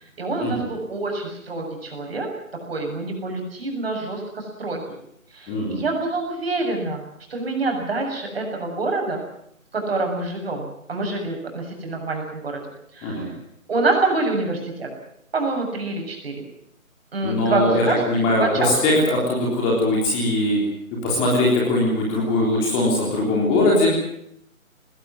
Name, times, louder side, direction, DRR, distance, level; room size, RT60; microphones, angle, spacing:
voice 1, 0.2-2.3 2.7-5.0 5.3-7.0 7.3-9.2 9.7-12.6 12.9-13.3 13.7-14.9 15.3-16.3 17.1-18.0 18.4-18.7, right 3 dB, 45° right, 2 dB, 7.1 m, -26 dB
voice 2, 5.5-5.8 13.0-13.3 17.2-20.6 21.0-23.9, left 1 dB, 10° left, -3 dB, 3.7 m, -21 dB
20.0 x 18.0 x 9.5 m, 0.73 s
figure-of-eight pair, 160°, 42 cm